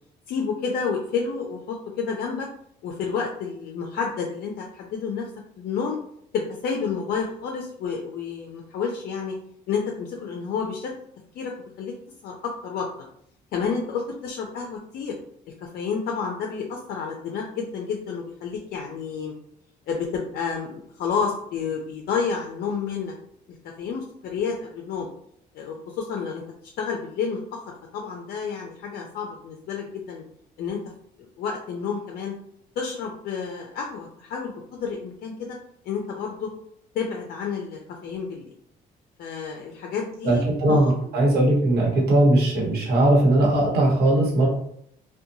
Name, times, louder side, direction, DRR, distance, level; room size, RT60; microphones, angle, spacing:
voice 1, 0.3-2.5 2.8-5.3 5.6-6.0 6.3-9.4 9.7-10.9 11.3-11.5 11.8-11.9 12.2-12.9 13.5-15.1 15.6-19.3 19.9-23.1 23.8-25.1 25.5-26.4 26.8-27.6 27.9-30.2 30.6-30.8 31.2-32.3 32.8-35.6 35.8-36.5 36.9-38.5 39.2-40.4 40.7-40.9, left 5 dB, 65° left, 1 dB, 0.4 m, -30 dB
voice 2, 40.2-44.5, right 1 dB, 65° right, -2 dB, 1.1 m, -19 dB
2.5 x 2.2 x 2.7 m, 0.69 s
cardioid pair, 110°, 17 cm